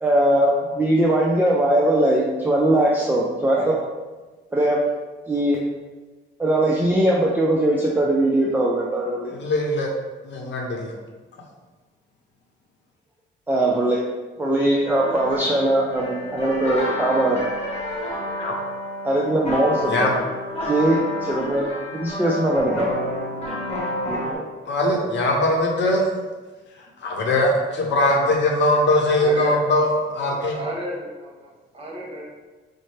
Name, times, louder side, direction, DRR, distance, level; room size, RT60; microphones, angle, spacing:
voice 1, 0.0-3.8 4.5-4.8 5.3-5.6 6.4-9.3 13.5-14.0 14.4-17.4 19.0-20.1 20.6-22.9 24.1-24.5, right 1 dB, 10° right, -4 dB, 0.5 m, -20 dB
voice 2, 9.3-9.9 10.2-10.9 18.4-18.5 19.9-20.1 24.7-26.1 27.0-30.6, left 1 dB, 65° left, 0 dB, 0.8 m, -21 dB
sound 1, 14.9-24.3, left 1 dB, 35° left, 1.1 m, -29 dB
voice 3, 29.2-29.6 30.5-32.2, right 1 dB, 30° right, -3 dB, 1.2 m, -32 dB
5.2 x 2.1 x 3.2 m, 1.3 s
cardioid pair, 90°, 20 cm